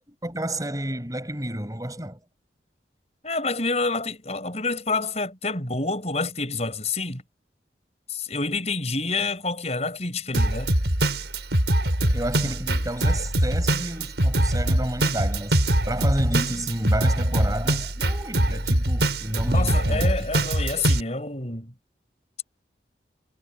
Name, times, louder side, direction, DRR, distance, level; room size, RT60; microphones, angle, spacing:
voice 1, 0.0-2.2 12.1-20.3, right 1 dB, 20° right, 6.0 m, -30 dB
voice 2, 3.2-7.2 8.1-10.7 19.5-21.7, left 3 dB, 40° left, 6.2 m, -28 dB
Drum kit, 10.3-21.0, right 1 dB, 80° right, 5.4 m, -23 dB
head